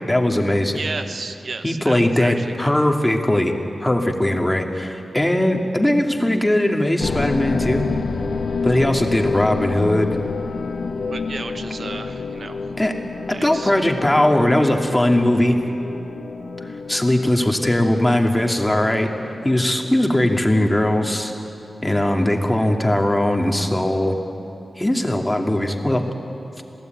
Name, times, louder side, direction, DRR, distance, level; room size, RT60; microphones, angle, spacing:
voice 1, 0.1-0.8 1.6-3.5 3.8-7.9 8.6-10.1 12.8-13.0 13.3-15.6 16.6-19.1 19.4-21.3 21.8-24.2 24.8-26.0, left 1 dB, 10° left, 3 dB, 2.5 m, -19 dB
voice 2, 0.7-2.7 10.5-10.6 11.1-12.6 13.3-13.7, right 3 dB, 65° right, 8 dB, 1.1 m, -33 dB
sound 1, 7.0-21.0, left 4 dB, 70° left, 1.4 m, -29 dB
26.5 x 18.0 x 9.4 m, 2.8 s
wide cardioid pair, 75°, 0 cm